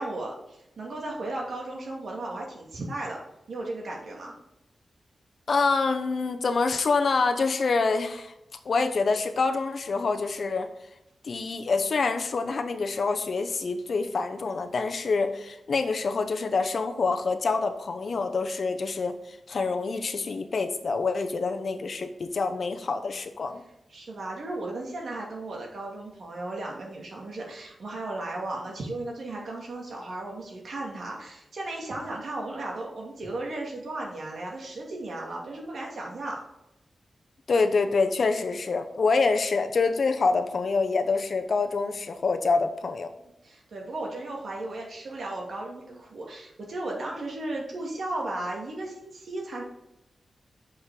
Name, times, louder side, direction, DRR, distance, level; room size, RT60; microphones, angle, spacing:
voice 1, 0.0-3.2 3.5-4.3 23.9-36.4 43.4-49.6, right 2 dB, 70° right, -1 dB, 2.3 m, -35 dB
voice 2, 5.5-8.3 8.6-10.7 11.2-23.6 37.5-43.1, left 4 dB, 60° left, 7 dB, 0.8 m, -26 dB
6.4 x 5.6 x 4.9 m, 0.88 s
wide cardioid pair, 85°, 0 cm